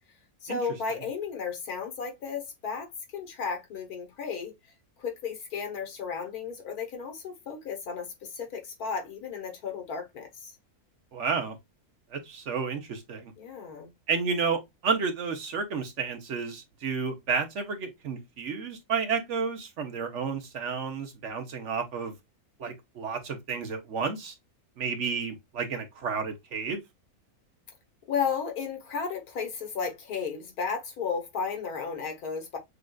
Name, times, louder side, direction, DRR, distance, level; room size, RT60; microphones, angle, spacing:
voice 1, 0.4-4.5 5.0-10.5 13.4-13.9 28.1-32.6, left 6 dB, 85° left, 1.7 m, -34 dB
voice 2, 11.1-11.6 12.1-13.3 14.1-22.1 22.6-24.3 24.8-26.8, right 5 dB, 55° right, 1.1 m, -31 dB
6.4 x 2.5 x 2.3 m
omnidirectional pair, 1.5 m